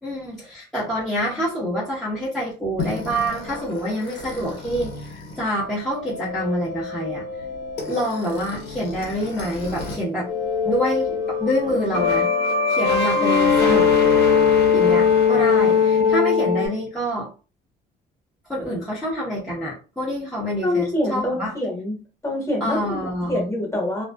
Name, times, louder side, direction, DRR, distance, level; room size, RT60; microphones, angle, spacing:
voice 1, 0.0-7.4 7.9-10.3 10.6-12.3 12.7-13.9 14.7-17.3 18.5-21.5 22.6-23.5, equal, ahead, -9 dB, 0.9 m, -26 dB
sound 1, 2.8-10.0 10.2-16.7, left 6 dB, 80° left, 0.9 m, -22 dB
voice 2, 20.6-22.0 22.2-24.0, left 1 dB, 15° left, -2 dB, 1.2 m, -25 dB
2.4 x 2.3 x 2.2 m, 0.35 s
cardioid pair, 110°, 17 cm